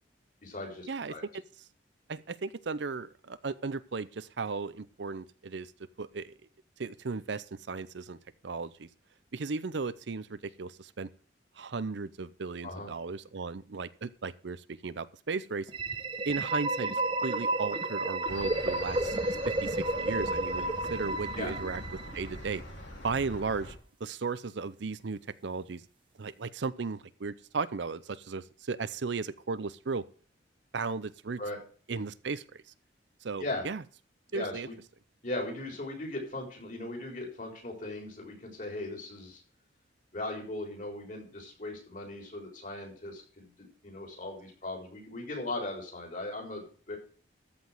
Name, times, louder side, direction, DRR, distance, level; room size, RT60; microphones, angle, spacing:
voice 1, 0.4-1.2 12.6-12.9 21.4-21.5 31.4-31.6 33.4-33.7 34.3-34.8 35.2-39.4 40.1-47.0, left 2 dB, 40° left, 1 dB, 4.1 m, -38 dB
voice 2, 2.1-5.7 6.0-6.3 6.8-8.2 8.4-8.9 9.3-11.1 11.6-15.7 16.3-19.2 19.5-21.8 22.1-22.6 23.0-25.8 26.2-30.0 30.7-31.4 31.9-32.6 33.2-33.8 34.3-34.7, right 4 dB, 65° right, 16 dB, 0.6 m, -36 dB
sound 1, 15.7-22.5, right 2 dB, 25° right, 0.8 m, -32 dB
sound 2, 18.3-23.7, left 1 dB, 65° left, 2.8 m, -43 dB
13.5 x 5.2 x 7.7 m, 0.42 s
head